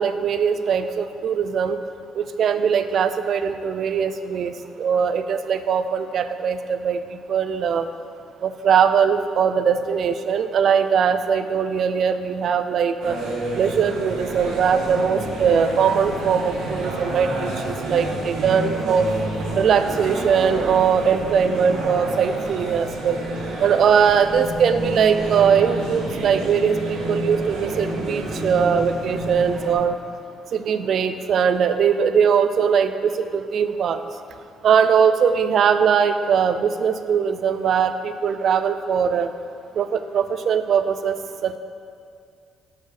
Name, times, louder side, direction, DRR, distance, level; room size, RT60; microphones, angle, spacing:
voice 1, 0.0-1.8 2.1-4.5 4.8-7.0 7.3-7.9 8.4-13.2 13.6-19.1 19.5-23.2 23.6-30.0 30.5-34.0 34.6-39.3 39.8-41.6, right 7 dB, 55° right, 10 dB, 0.4 m, -20 dB
sound 1, 13.0-29.7, right 1 dB, 90° right, 1.4 m, -29 dB
6.5 x 5.1 x 6.5 m, 2.3 s
cardioid pair, 130°, 0 cm